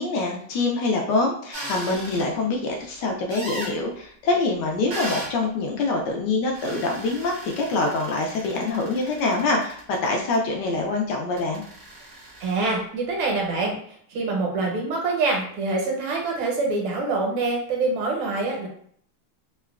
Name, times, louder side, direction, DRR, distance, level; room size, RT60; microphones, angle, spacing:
voice 1, 0.0-11.6, left 3 dB, 80° left, 1 dB, 0.9 m, -25 dB
sound 1, 1.5-2.3 3.3-3.8 4.9-5.3 6.5-10.4 11.4-12.8, right 1 dB, 65° right, 0.7 m, -37 dB
voice 2, 12.4-13.8 14.1-18.7, right 3 dB, 80° right, 0 dB, 1.7 m, -25 dB
3.7 x 2.1 x 2.3 m, 0.62 s
omnidirectional pair, 2.4 m